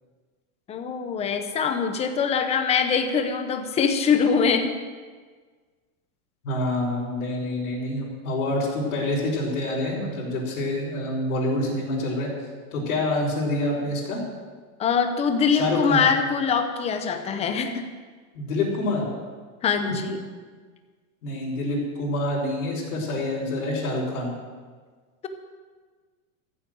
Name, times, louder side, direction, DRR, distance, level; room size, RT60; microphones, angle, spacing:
voice 1, 0.7-4.7 14.8-17.8 19.6-20.2, left 6 dB, 15° left, 7 dB, 0.8 m, -23 dB
voice 2, 6.4-12.3 12.7-14.2 15.5-16.0 18.3-19.1 19.8-20.1 21.2-24.3, left 1 dB, 80° left, -4 dB, 5.5 m, -27 dB
14.5 x 8.5 x 7.8 m, 1.5 s
supercardioid pair, 160°, 43 cm